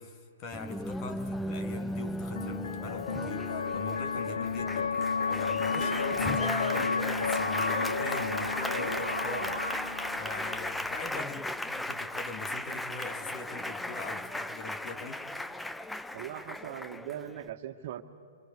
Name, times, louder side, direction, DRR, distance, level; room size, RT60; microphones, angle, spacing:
voice 1, 0.0-5.0 5.3-9.6 10.2-15.3, left 3 dB, 35° left, 6 dB, 2.3 m, -42 dB
Applause, 0.5-17.5, left 1 dB, 5° left, 0.7 m, -36 dB
sound 1, 0.9-11.2, left 5 dB, 70° left, 0.6 m, -33 dB
sound 2, 5.8-10.2, right 7 dB, 70° right, 0.6 m, -39 dB
voice 2, 16.1-18.0, right 11 dB, 50° right, 7 dB, 1.9 m, -40 dB
26.5 x 26.5 x 6.9 m, 2.1 s
figure-of-eight pair, 120°, 0 cm